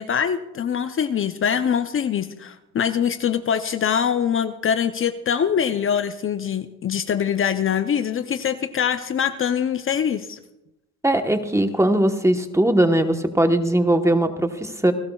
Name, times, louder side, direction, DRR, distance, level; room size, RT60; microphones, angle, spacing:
voice 1, 0.0-10.4, left 8 dB, 45° left, 10 dB, 0.6 m, -23 dB
voice 2, 11.0-14.9, right 1 dB, 10° right, 7 dB, 1.1 m, -20 dB
28.0 x 12.5 x 2.3 m, 0.94 s
cardioid pair, 90°, 30 cm